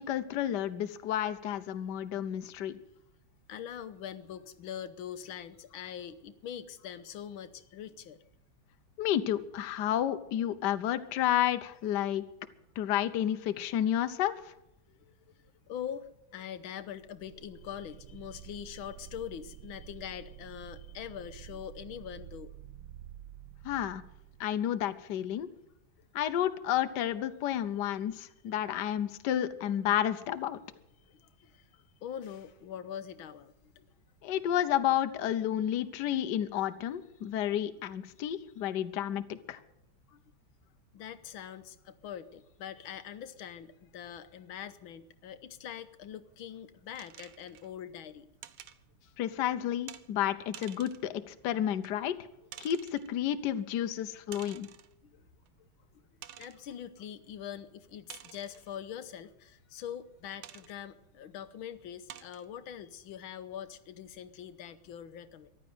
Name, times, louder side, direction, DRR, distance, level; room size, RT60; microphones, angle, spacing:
voice 1, 0.0-2.8 9.0-12.2 12.8-14.4 23.6-24.0 24.4-25.5 26.1-30.6 34.2-39.6 49.2-52.2 52.6-54.7, left 11 dB, 65° left, 10 dB, 1.4 m, -31 dB
voice 2, 3.5-8.2 14.9-22.5 31.1-33.9 40.1-40.2 40.9-48.3 49.0-49.1 55.0-55.3 56.4-65.5, left 9 dB, 80° left, 11 dB, 1.7 m, -43 dB
sound 1, 17.0-24.7, right 11 dB, 70° right, 1.5 m, -50 dB
sound 2, 46.9-47.7 48.4-48.8 49.9-50.1 50.5-51.1 51.8-51.9 52.5-53.1 54.3-54.9 55.5-55.6 56.2-56.6 58.1-58.7 60.4-60.7 61.4-61.5 62.1-62.5, right 11 dB, 85° right, 1.7 m, -49 dB
14.5 x 11.5 x 7.9 m, 0.80 s
omnidirectional pair, 2.2 m